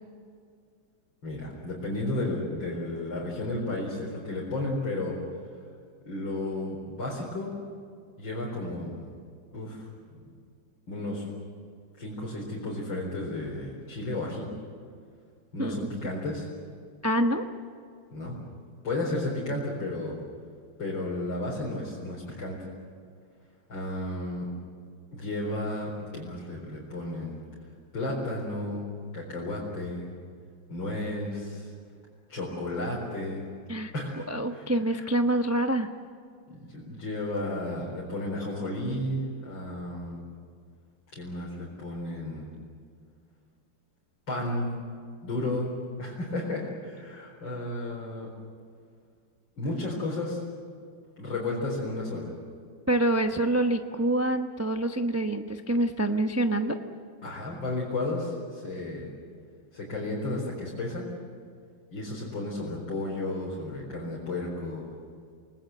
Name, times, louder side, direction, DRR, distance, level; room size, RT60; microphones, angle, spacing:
voice 1, 1.2-5.2 6.1-7.5 8.2-8.9 9.5-9.9 10.2-10.3 10.9-11.2 12.0-14.4 15.5-16.5 18.1-18.4 18.8-20.1 20.8-22.7 23.7-24.4 25.1-27.3 27.9-28.9 29.1-30.1 30.7-31.7 32.3-33.5 33.9-35.1 36.5-40.2 41.1-42.5 44.3-44.7 45.2-48.3 49.6-50.4 51.2-52.3 57.2-59.1 59.7-61.0 61.9-64.9, left 2 dB, 65° left, -4 dB, 5.1 m, -33 dB
voice 2, 17.0-17.4 33.7-33.9 34.3-35.9 52.9-56.8, right 1 dB, 20° right, 5 dB, 0.4 m, -26 dB
28.5 x 19.5 x 7.8 m, 2.2 s
omnidirectional pair, 2.3 m